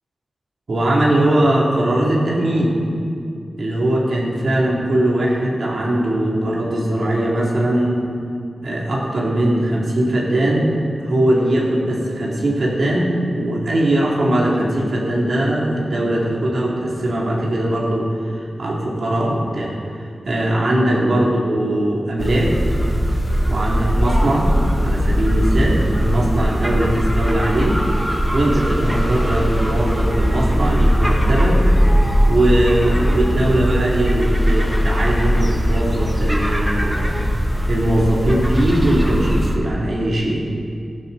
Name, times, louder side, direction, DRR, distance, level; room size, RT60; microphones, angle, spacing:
voice 1, 0.7-2.8 3.6-8.0 8.6-10.7 11.0-19.7 20.0-22.6 23.5-24.6 24.8-27.8 28.3-31.7 32.3-37.2 37.7-40.5, right 1 dB, 70° right, -4 dB, 2.9 m, -20 dB
sound 1, 22.2-39.6, equal, ahead, 2.2 m, -19 dB
15.0 x 11.0 x 4.2 m, 2.4 s
cardioid pair, 50°, 0 cm